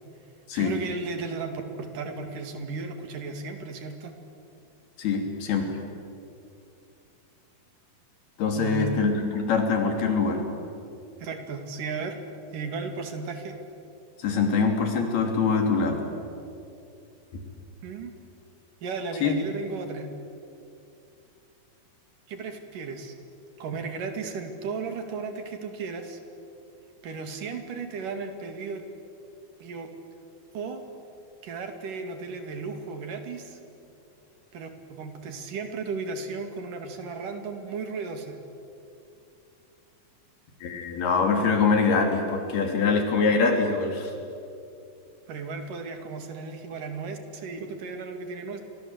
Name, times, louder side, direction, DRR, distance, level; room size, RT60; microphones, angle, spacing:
voice 1, 0.6-4.2 8.6-9.0 11.2-12.2 12.5-13.6 17.8-18.1 18.8-20.1 22.3-23.1 23.6-26.2 27.0-28.8 29.6-29.9 30.5-30.8 31.4-33.6 34.5-38.4 45.3-48.6, right 4 dB, 60° right, 6 dB, 3.7 m, -35 dB
voice 2, 5.0-5.7 8.4-10.4 14.2-16.0 19.2-19.3 40.6-44.1, left 4 dB, 85° left, 3 dB, 5.1 m, -24 dB
29.5 x 24.5 x 8.0 m, 2.6 s
omnidirectional pair, 4.3 m